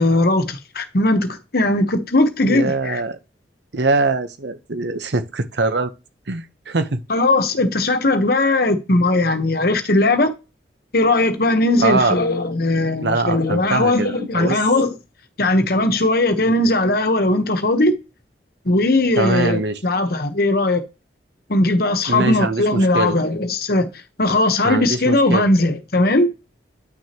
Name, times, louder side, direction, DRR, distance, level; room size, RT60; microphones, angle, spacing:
voice 1, 0.0-3.0 7.1-10.3 10.9-14.9 15.4-17.9 18.6-20.8 21.5-23.9 24.2-26.3, left 2 dB, 55° left, 1.1 m, -18 dB
voice 2, 2.5-3.2 3.7-5.9 6.3-7.0 11.2-11.4 11.8-12.2 13.0-14.6 16.5-16.6 19.2-19.8 22.1-23.2 24.6-25.5, right 3 dB, 70° right, 0.9 m, -22 dB
9.4 x 6.3 x 3.0 m
head